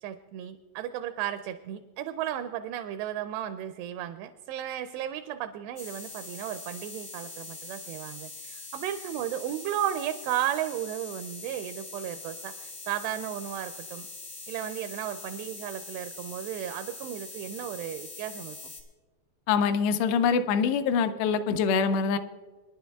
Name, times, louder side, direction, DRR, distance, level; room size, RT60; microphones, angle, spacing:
voice 1, 0.0-14.1 14.5-18.6, right 11 dB, 85° right, 9 dB, 2.5 m, -34 dB
sound 1, 5.8-18.8, left 3 dB, 60° left, 0.8 m, -43 dB
voice 2, 19.5-22.2, left 6 dB, 80° left, 10 dB, 2.6 m, -24 dB
26.0 x 10.5 x 2.3 m, 1.4 s
omnidirectional pair, 5.0 m